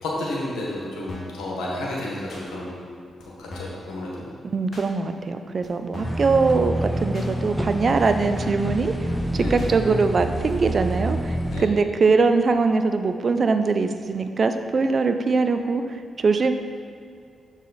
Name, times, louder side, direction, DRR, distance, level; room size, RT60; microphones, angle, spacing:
voice 1, 0.0-2.9 3.2-4.3 9.4-9.6 11.5-11.7, left 1 dB, 90° left, -4 dB, 1.2 m, -31 dB
sound 1, 1.1-1.4 2.3-2.5 3.2-3.3 3.5-3.9 4.7-4.9 5.6-5.7 5.9-6.3 7.1-7.3 8.0-8.1 8.4-8.7 9.6-9.7 10.5-10.6, left 2 dB, 55° left, 1.4 m, -39 dB
voice 2, 4.4-9.1 9.3-16.5, right 4 dB, 50° right, 8 dB, 0.4 m, -22 dB
sound 2, 6.0-11.6, right 1 dB, 5° right, 0.6 m, -27 dB
6.6 x 4.8 x 4.1 m, 2.4 s
cardioid pair, 60°, 0 cm